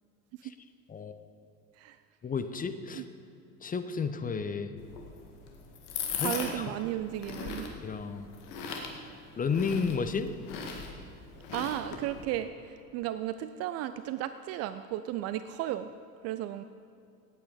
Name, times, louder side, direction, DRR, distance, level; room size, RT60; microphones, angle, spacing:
voice 1, 2.2-3.0 3.6-4.7 6.2-6.6 7.8-8.3 9.4-10.3, left 5 dB, 20° left, 10 dB, 0.7 m, -32 dB
sound 1, 4.8-12.2, left 5 dB, 55° left, 1.9 m, -39 dB
voice 2, 6.2-7.7 11.5-15.9 16.2-16.6, right 12 dB, 35° right, 12 dB, 0.4 m, -34 dB
17.0 x 8.8 x 5.3 m, 2.6 s
figure-of-eight pair, 65°, 45 cm